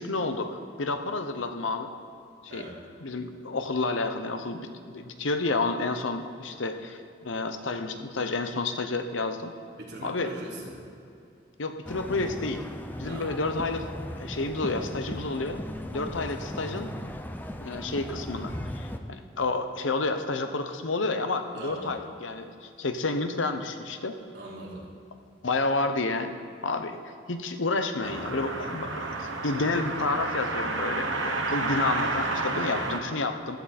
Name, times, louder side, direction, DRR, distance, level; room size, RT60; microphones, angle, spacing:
voice 1, 0.0-1.9 2.5-2.7 3.0-9.5 10.0-10.3 11.6-12.7 13.0-13.8 14.1-15.6 15.9-16.9 17.6-24.2 25.4-26.3 26.6-27.0 27.3-33.6, left 3 dB, 85° left, 7 dB, 0.9 m, -30 dB
voice 2, 9.8-10.8 13.0-13.3 21.5-21.9 24.3-24.8, right 1 dB, 60° right, -5 dB, 3.4 m, -41 dB
sound 1, 11.8-19.0, left 1 dB, 10° left, 0.5 m, -37 dB
sound 2, 28.0-33.0, right 3 dB, 90° right, 1.4 m, -30 dB
15.0 x 13.0 x 4.3 m, 2.5 s
head